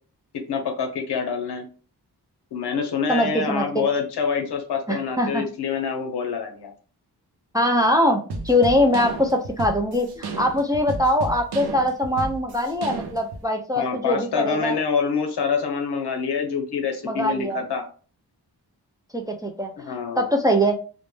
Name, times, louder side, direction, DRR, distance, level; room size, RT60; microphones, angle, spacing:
voice 1, 0.5-1.6 2.5-6.7 13.8-17.8 19.9-20.3, left 6 dB, 85° left, 3 dB, 0.7 m, -26 dB
voice 2, 3.1-3.8 4.9-5.4 7.5-14.8 17.0-17.6 19.1-20.7, equal, 10° right, 2 dB, 0.3 m, -22 dB
sound 1, 8.3-13.4, right 3 dB, 80° right, 0.6 m, -33 dB
2.1 x 2.0 x 3.1 m, 0.38 s
cardioid pair, 75°, 39 cm